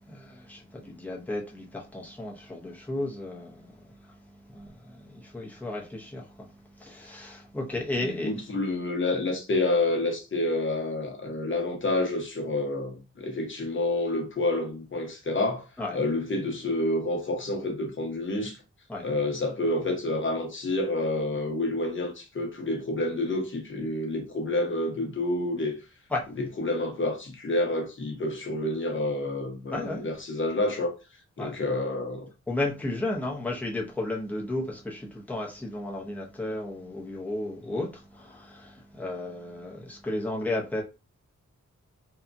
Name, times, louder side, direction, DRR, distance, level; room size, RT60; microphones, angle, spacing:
voice 1, 0.0-4.1 4.5-6.5 6.7-8.3 9.2-9.3 15.8-16.0 18.9-19.1 26.1-26.3 29.7-30.1 31.4-31.5 32.5-40.8, left 2 dB, 5° left, 0.7 m, -34 dB
voice 2, 8.0-15.6 15.9-18.6 19.0-25.8 26.4-30.9 31.4-32.3, left 2 dB, 45° left, 0.8 m, -28 dB
2.8 x 2.3 x 2.5 m
wide cardioid pair, 135°, 29 cm